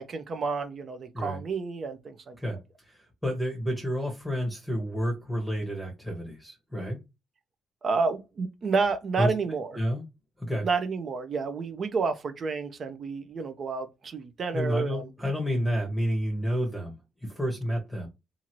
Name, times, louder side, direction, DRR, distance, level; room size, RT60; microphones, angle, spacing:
voice 1, 0.0-2.4 7.8-9.8 10.6-15.1, right 4 dB, 50° right, 0.5 m, -30 dB
voice 2, 2.9-7.0 9.2-9.3 9.8-10.0 10.4-10.7 14.5-16.9 17.2-18.1, equal, ahead, 0.9 m, -30 dB
2.8 x 2.5 x 3.0 m
cardioid pair, 90°, 0 cm